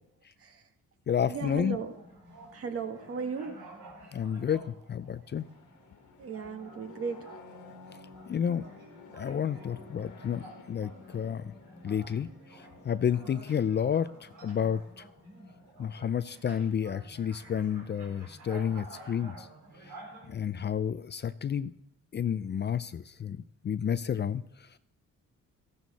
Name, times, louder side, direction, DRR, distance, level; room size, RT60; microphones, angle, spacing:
voice 1, 0.4-0.7 1.3-1.9 2.5-3.6 6.2-7.4 12.8-13.2, right 5 dB, 50° right, 1.7 m, -36 dB
voice 2, 1.1-1.8 4.1-5.5 8.3-8.6 9.1-11.5 11.8-15.1 15.8-19.5 20.3-21.7 22.1-24.7, left 8 dB, 35° left, 0.5 m, -31 dB
sound 1, 1.6-20.3, right 2 dB, 75° right, 4.5 m, -51 dB
sound 2, 5.3-16.0, left 4 dB, 85° left, 1.9 m, -53 dB
14.0 x 12.5 x 4.2 m
cardioid pair, 90°, 30 cm